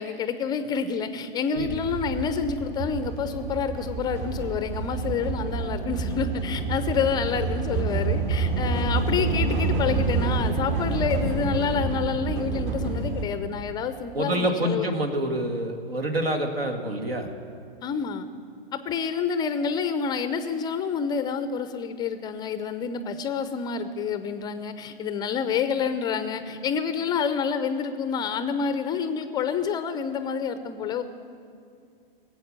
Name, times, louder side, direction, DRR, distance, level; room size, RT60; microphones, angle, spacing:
voice 1, 0.0-14.9 17.8-18.3 18.7-31.0, left 6 dB, 15° left, 11 dB, 0.4 m, -28 dB
sound 1, 1.6-13.2, right 4 dB, 50° right, 2.3 m, -28 dB
voice 2, 14.1-17.3, right 1 dB, 85° right, 6 dB, 1.8 m, -27 dB
18.0 x 8.2 x 7.3 m, 2.3 s
hypercardioid pair, 115°, 29 cm